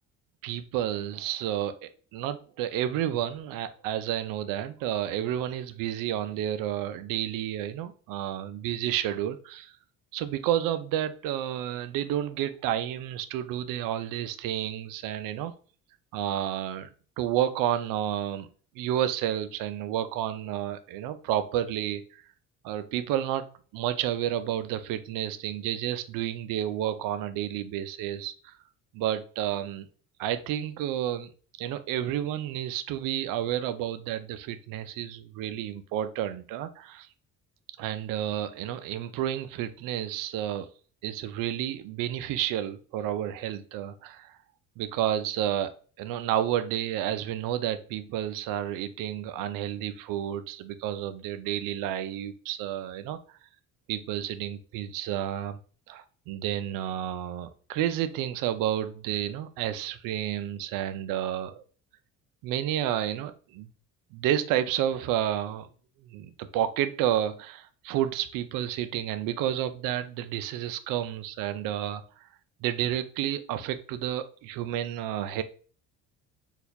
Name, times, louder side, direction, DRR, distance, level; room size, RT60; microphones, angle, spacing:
voice 1, 0.4-9.7 10.1-15.5 16.1-16.9 17.2-18.5 18.8-22.2 22.6-23.5 23.7-28.6 28.9-29.9 30.2-31.3 31.6-37.1 37.8-40.7 41.0-44.4 44.8-53.2 53.9-55.6 55.9-61.6 62.4-63.7 64.1-65.7 66.1-72.3 72.6-75.4, right 11 dB, 65° right, 12 dB, 0.5 m, -30 dB
4.0 x 2.4 x 2.6 m, 0.42 s
supercardioid pair, 85°, 35 cm